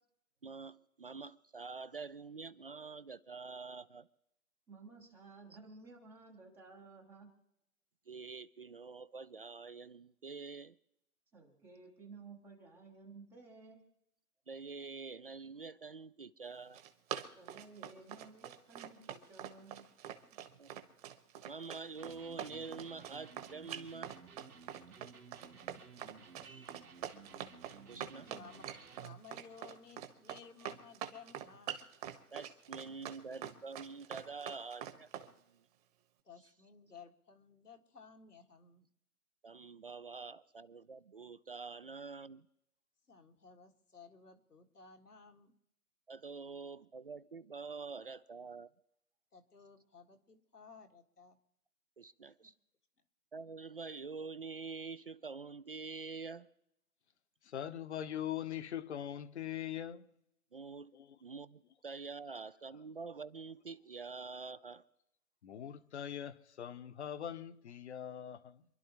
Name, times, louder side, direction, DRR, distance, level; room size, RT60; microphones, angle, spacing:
voice 1, 0.4-4.1 8.1-10.8 14.5-16.8 20.6-20.7 21.4-24.1 26.4-26.7 27.9-28.3 32.3-35.3 39.4-42.5 46.1-48.7 52.0-52.5 53.3-56.5 60.5-60.9 61.2-64.8, right 4 dB, 40° right, 0.4 m, -46 dB
voice 2, 4.7-7.3 11.3-13.8 17.3-20.1 20.4-20.5, right 4 dB, 5° right, 0.7 m, -55 dB
Run, 16.5-35.3, right 10 dB, 25° right, 1.2 m, -44 dB
Electric guitar, 22.0-29.3, right 5 dB, 75° right, 2.7 m, -56 dB
voice 3, 28.2-31.8 36.2-38.9 43.1-45.5 49.3-51.4 52.4-52.5, left 5 dB, 85° left, 1.9 m, -57 dB
voice 4, 57.4-60.1 60.9-61.2 65.4-68.7, left 10 dB, 45° left, 0.9 m, -42 dB
28.0 x 11.5 x 3.0 m
figure-of-eight pair, 140°, 45 cm